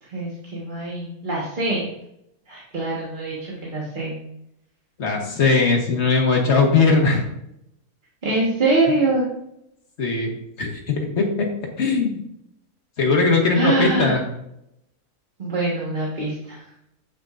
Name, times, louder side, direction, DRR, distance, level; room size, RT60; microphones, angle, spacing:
voice 1, 0.0-1.9 2.5-4.1 8.2-9.2 13.5-14.2 15.4-16.7, right 2 dB, 35° right, -6 dB, 1.4 m, -24 dB
voice 2, 5.0-7.2 10.0-10.3 10.6-11.5 11.8-12.2 13.0-14.2, left 4 dB, 50° left, 1 dB, 1.5 m, -19 dB
7.7 x 6.1 x 2.5 m, 0.78 s
omnidirectional pair, 1.6 m